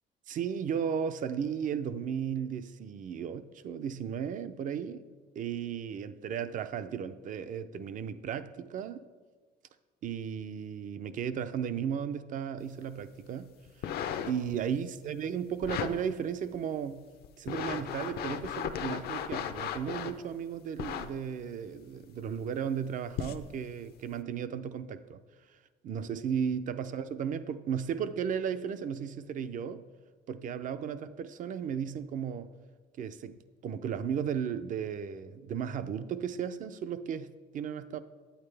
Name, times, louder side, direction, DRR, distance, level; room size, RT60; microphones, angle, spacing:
voice 1, 0.3-5.0 5.4-9.1 10.0-13.5 13.8-13.9 14.3-17.1 17.4-25.2 25.8-29.8 30.3-32.5 33.0-33.4 33.6-38.0, right 8 dB, 50° right, 12 dB, 0.5 m, -35 dB
sound 1, 13.7-14.6 15.6-15.9 16.5-16.6 17.2-20.2 20.8-21.1 22.0-22.1 23.1-23.5 24.1-24.2, left 9 dB, 70° left, 0.6 m, -35 dB
8.8 x 8.7 x 3.3 m, 1.4 s
cardioid pair, 110°, 17 cm